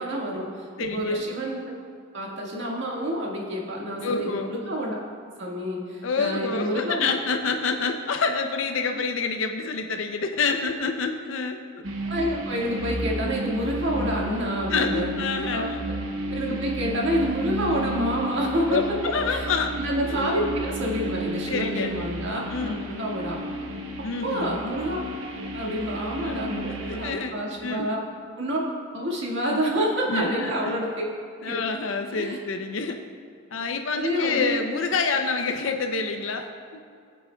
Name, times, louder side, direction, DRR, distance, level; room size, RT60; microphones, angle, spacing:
voice 1, 0.0-1.6 2.1-5.0 5.4-7.1 12.0-15.1 15.5-15.6 16.3-18.8 19.3-19.5 19.8-23.4 24.2-25.0 25.5-28.0 28.4-28.6 28.9-31.0 31.5-31.6 32.1-32.4 34.0-34.6, equal, 60° right, -3 dB, 1.7 m, -28 dB
voice 2, 0.8-1.2 4.0-4.6 6.0-11.8 14.7-15.8 16.5-16.6 18.7-19.8 20.1-20.3 21.5-21.9 22.5-22.9 24.0-24.6 26.2-26.4 26.7-28.1 30.1-30.8 31.4-33.0 33.5-36.8, left 4 dB, 70° left, 5 dB, 0.5 m, -28 dB
sound 1, 11.8-27.2, right 1 dB, 90° right, 0.9 m, -32 dB
16.5 x 8.4 x 2.3 m, 2.2 s
head